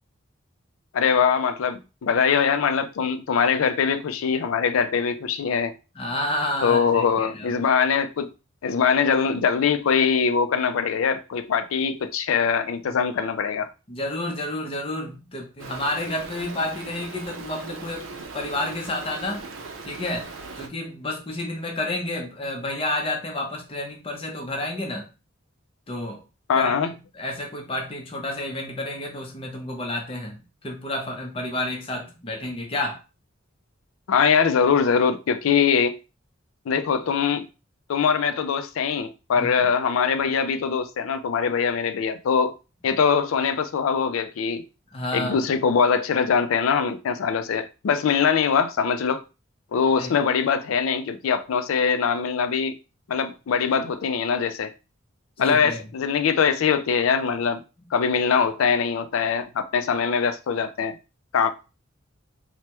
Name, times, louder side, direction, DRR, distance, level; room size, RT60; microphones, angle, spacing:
voice 1, 0.9-5.7 6.6-8.3 8.6-13.7 26.5-26.9 34.1-36.0 36.7-37.5 37.9-42.5 42.8-44.6 45.1-49.2 49.7-52.8 53.1-54.7 55.4-57.6 57.9-61.0 61.3-61.5, left 6 dB, 85° left, 0.4 m, -22 dB
voice 2, 6.0-7.5 13.9-19.4 19.9-20.3 20.6-25.1 25.9-26.2 26.6-33.0 39.4-39.7 44.9-45.5 50.0-50.1 55.4-55.8, left 1 dB, 25° left, 0.6 m, -30 dB
Stream, 15.6-20.7, right 4 dB, 70° right, 0.5 m, -39 dB
3.3 x 2.1 x 2.9 m
head